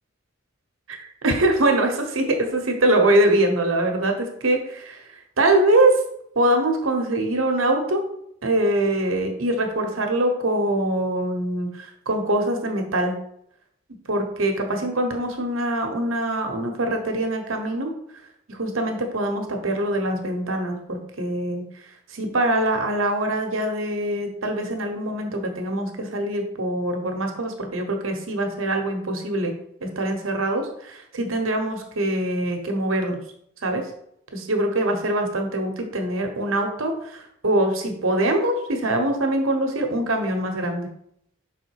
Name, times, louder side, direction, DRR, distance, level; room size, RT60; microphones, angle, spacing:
voice 1, 0.9-6.0 6.3-8.0 8.4-13.2 14.1-17.9 18.5-21.6 22.1-29.5 29.8-33.2 33.6-33.8 34.3-40.9, right 1 dB, 90° right, 4 dB, 1.1 m, -23 dB
5.7 x 3.8 x 4.8 m, 0.72 s
head